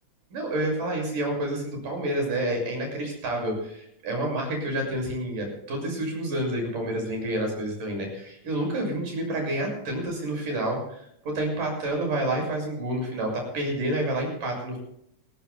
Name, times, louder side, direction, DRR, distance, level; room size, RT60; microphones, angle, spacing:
voice 1, 0.3-14.8, right 1 dB, 85° right, 1 dB, 8.4 m, -29 dB
30.0 x 15.5 x 2.2 m, 0.73 s
omnidirectional pair, 3.7 m